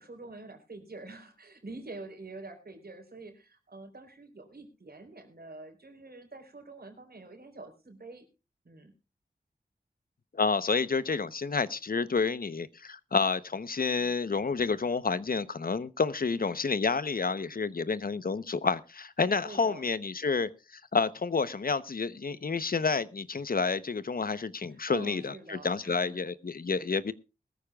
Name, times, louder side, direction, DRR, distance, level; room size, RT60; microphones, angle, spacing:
voice 1, 0.0-8.3 8.6-8.9 19.4-19.9 24.7-26.2, right 2 dB, 75° right, 3.9 m, -46 dB
voice 2, 10.3-27.1, left 4 dB, 65° left, 0.8 m, -29 dB
20.5 x 14.0 x 2.3 m
wide cardioid pair, 55°, 16 cm